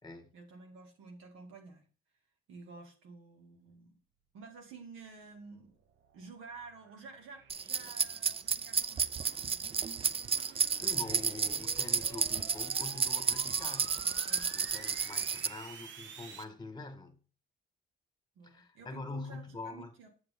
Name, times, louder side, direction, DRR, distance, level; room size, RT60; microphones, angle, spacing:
voice 1, 0.3-1.9 2.5-3.9 4.3-5.8 6.1-9.5 14.0-14.5 18.4-20.1, right 4 dB, 90° right, 2.2 m, -51 dB
sound 1, 5.1-16.4, right 7 dB, 70° right, 1.0 m, -52 dB
sound 2, 7.5-15.5, right 6 dB, 30° right, 0.4 m, -32 dB
voice 2, 10.4-14.0 14.5-17.2 18.4-19.9, left 3 dB, 20° left, 1.8 m, -45 dB
7.4 x 6.7 x 3.7 m
cardioid pair, 90°, 20 cm